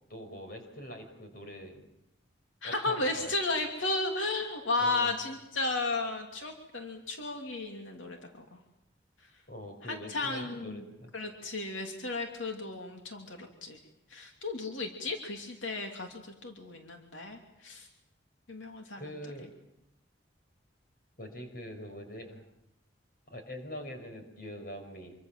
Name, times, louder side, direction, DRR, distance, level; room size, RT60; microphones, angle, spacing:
voice 1, 0.1-1.9 2.6-3.3 4.8-5.1 9.5-11.3 19.0-19.5 21.2-22.4 23.3-25.1, equal, 50° left, 5 dB, 5.9 m, -44 dB
voice 2, 2.6-8.6 9.8-10.8 11.1-13.8 14.1-17.9 18.5-19.0, left 2 dB, 85° left, 3 dB, 3.1 m, -34 dB
27.0 x 24.5 x 7.6 m, 0.84 s
head